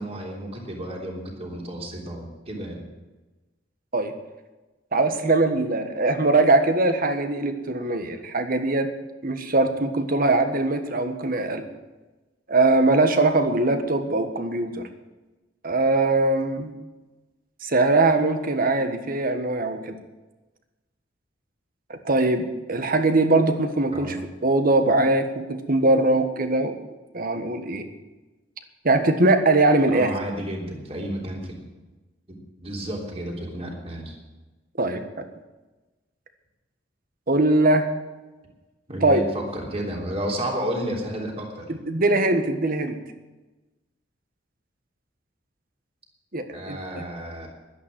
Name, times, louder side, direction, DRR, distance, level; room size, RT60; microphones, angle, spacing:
voice 1, 0.0-2.9 23.9-24.2 29.9-31.5 32.3-34.2 38.9-41.7 46.5-47.5, right 1 dB, 35° right, -1 dB, 3.4 m, -32 dB
voice 2, 4.9-8.9 9.2-11.6 12.5-14.7 15.6-16.7 17.6-20.0 21.9-24.2 24.4-26.7 27.1-27.8 28.8-30.1 34.8-35.2 37.3-37.9 39.0-39.2 41.7-43.0 46.3-47.0, right 2 dB, 50° right, 7 dB, 1.4 m, -21 dB
11.5 x 11.0 x 7.6 m, 1.1 s
head